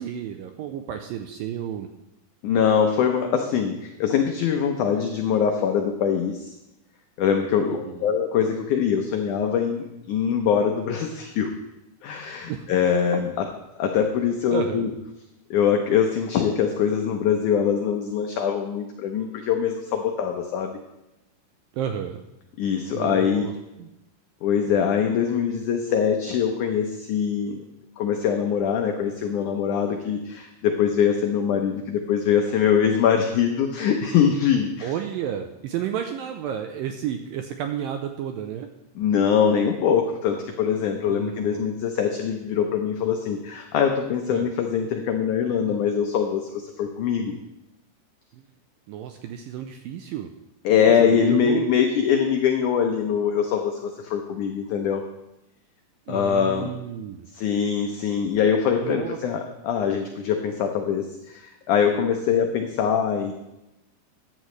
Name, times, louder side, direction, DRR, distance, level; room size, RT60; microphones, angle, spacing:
voice 1, 0.0-1.9 7.7-8.2 12.5-12.6 14.5-14.9 21.7-22.2 22.9-23.5 23.8-23.9 34.8-38.7 41.1-41.6 44.3-44.5 48.3-48.5 48.9-50.3 50.7-51.7 56.1-57.3 58.8-59.2, right 9 dB, 85° right, 6 dB, 2.0 m, -32 dB
voice 2, 2.4-6.5 7.2-11.5 12.0-13.3 13.8-14.9 15.5-20.8 22.6-23.5 24.4-27.6 28.0-34.9 39.0-47.3 50.7-55.0 56.1-56.7 57.3-63.3, left 7 dB, 85° left, 4 dB, 1.7 m, -23 dB
14.0 x 10.0 x 3.2 m, 0.92 s
omnidirectional pair, 4.6 m